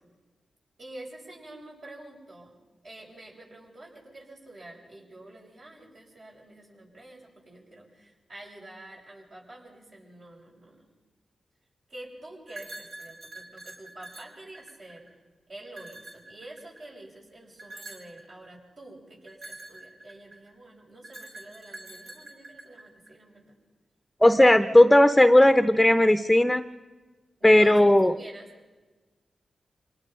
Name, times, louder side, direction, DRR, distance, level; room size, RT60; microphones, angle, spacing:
voice 1, 0.8-2.6 2.8-11.0 11.9-15.1 15.5-23.5 27.4-28.5, right 1 dB, 60° right, -3 dB, 7.1 m, -47 dB
sound 1, 12.5-15.1 15.7-16.9 17.6-18.2 19.3-20.5 21.0-23.1, right 2 dB, 75° right, 3.2 m, -45 dB
voice 2, 24.2-26.6 27.4-28.1, left 1 dB, 10° left, 10 dB, 0.8 m, -17 dB
26.5 x 19.0 x 5.5 m, 1.3 s
cardioid pair, 45°, 0 cm